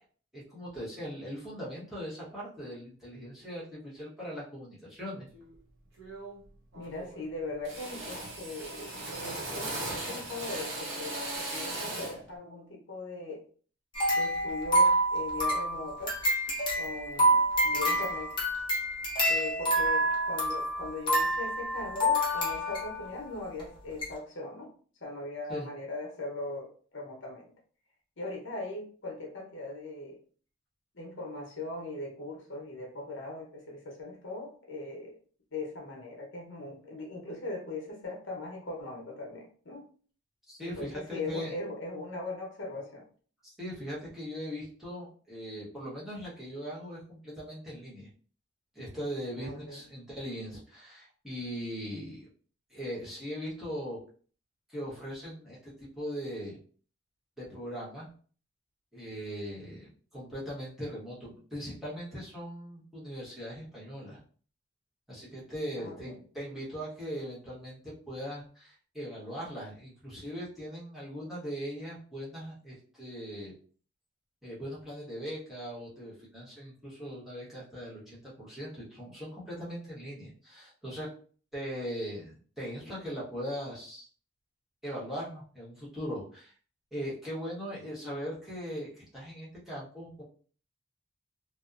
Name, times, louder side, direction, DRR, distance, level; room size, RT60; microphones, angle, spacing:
voice 1, 0.3-5.3 25.5-25.7 40.5-41.6 43.4-48.1 48.7-52.3 52.7-54.0 54.7-56.6 57.4-58.1 58.9-64.2 65.1-73.5 74.4-81.1 81.5-84.1 84.8-86.5 86.9-90.2, equal, ahead, -8 dB, 0.9 m, -40 dB
Drill, 5.3-5.6 6.0-6.5 6.7-7.3 7.6-12.2, right 2 dB, 70° right, 0.8 m, -38 dB
voice 2, 6.7-13.4 14.1-16.2 16.7-18.3 19.3-24.7 25.0-27.5 28.2-30.2 30.9-35.2 35.5-39.9 40.6-43.0 49.4-49.8 65.8-66.1, left 2 dB, 65° left, -1 dB, 0.9 m, -40 dB
sound 1, 13.9-23.1 23.6-23.7 24.0-24.1, right 1 dB, 25° left, 0.7 m, -27 dB
2.7 x 2.1 x 2.4 m, 0.43 s
head